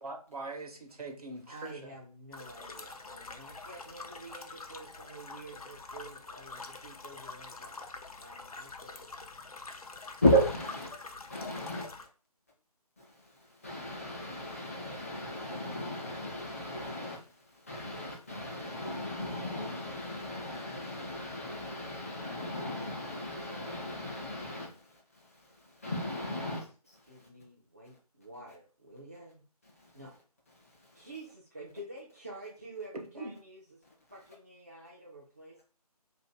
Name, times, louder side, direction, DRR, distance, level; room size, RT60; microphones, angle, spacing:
voice 1, 0.0-2.0 33.1-33.3, right 2 dB, 70° right, 3 dB, 0.8 m, -42 dB
voice 2, 1.5-7.9 8.2-9.1 27.1-29.4 29.9-30.1 30.9-33.6 34.1-35.6, right 2 dB, 25° right, -5 dB, 0.4 m, -49 dB
sound 1, 2.3-12.1, left 3 dB, 65° left, 0.5 m, -46 dB
voice 3, 9.6-11.9 13.0-13.1 13.6-27.3 29.8-29.9 30.6-31.1, equal, 20° left, -2 dB, 0.6 m, -35 dB
2.6 x 2.5 x 3.6 m, 0.36 s
figure-of-eight pair, 155°, 20 cm